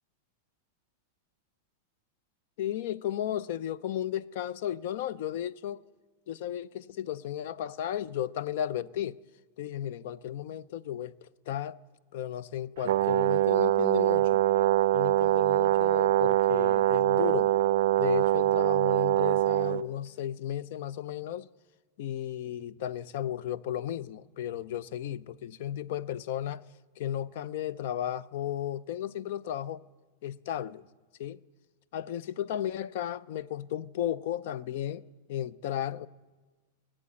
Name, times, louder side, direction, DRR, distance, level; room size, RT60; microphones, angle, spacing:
voice 1, 2.6-5.8 6.3-9.2 9.6-11.8 12.1-14.4 14.9-17.5 18.0-21.5 22.0-26.6 27.0-29.8 30.2-30.9 31.2-31.4 31.9-35.0 35.3-36.1, left 11 dB, 60° left, 0.5 m, -34 dB
Brass instrument, 12.8-19.8, right 14 dB, 70° right, 0.4 m, -24 dB
18.0 x 7.6 x 9.9 m
supercardioid pair, 150°, 0 cm